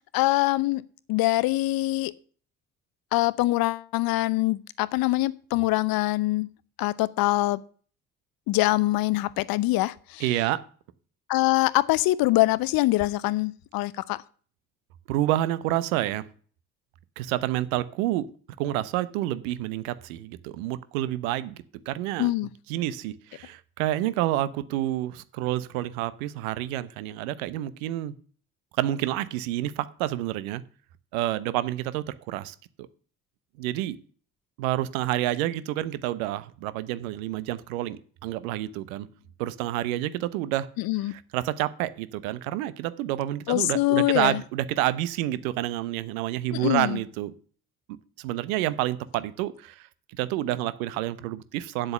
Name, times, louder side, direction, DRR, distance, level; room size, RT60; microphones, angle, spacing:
voice 1, 0.1-0.8 1.1-2.1 3.1-6.5 6.8-7.6 8.5-10.2 11.3-14.2 22.2-22.5 40.8-41.1 43.5-44.4 46.5-47.0, left 18 dB, 55° left, 19 dB, 0.7 m, -24 dB
voice 2, 10.2-10.6 15.1-16.3 17.2-18.3 18.6-21.6 21.9-22.3 22.7-28.1 28.8-30.6 31.1-32.5 33.6-34.0 34.6-39.1 39.4-40.7 41.1-47.3 48.2-49.9 50.2-51.9, right 14 dB, 70° right, 16 dB, 0.9 m, -28 dB
9.2 x 8.0 x 6.9 m, 0.43 s
figure-of-eight pair, 50°, 43 cm